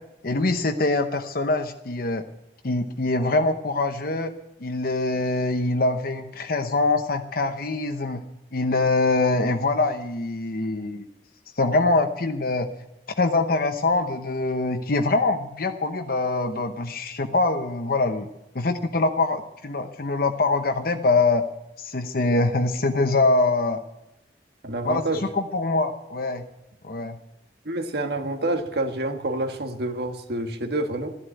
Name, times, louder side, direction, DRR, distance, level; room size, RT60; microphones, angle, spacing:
voice 1, 0.2-2.2 2.6-4.3 4.6-8.2 8.5-11.1 11.6-12.7 13.2-18.3 18.5-21.4 21.8-23.8 24.8-25.0 25.3-26.5 26.8-27.2, left 3 dB, 55° left, 6 dB, 0.9 m, -24 dB
voice 2, 24.6-25.2 27.6-31.2, right 2 dB, 60° right, 6 dB, 1.7 m, -28 dB
13.5 x 11.5 x 9.0 m, 0.89 s
head